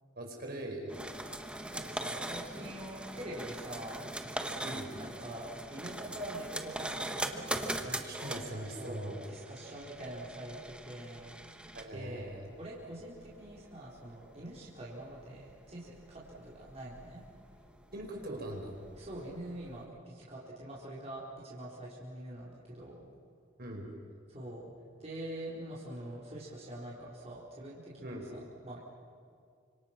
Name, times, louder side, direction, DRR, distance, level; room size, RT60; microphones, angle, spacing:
voice 1, 0.2-0.9 4.6-4.9 7.8-9.2 11.8-12.5 17.9-18.8 23.6-23.9 28.0-28.2, right 1 dB, 55° right, 0 dB, 5.2 m, -41 dB
sound 1, 0.9-19.8, right 1 dB, 5° right, 1.4 m, -42 dB
voice 2, 1.7-4.0 4.9-7.5 8.8-11.4 11.9-17.2 19.0-23.0 24.3-24.7 25.0-28.8, right 1 dB, 35° right, -6 dB, 4.3 m, -44 dB
29.5 x 26.0 x 6.0 m, 2.3 s
head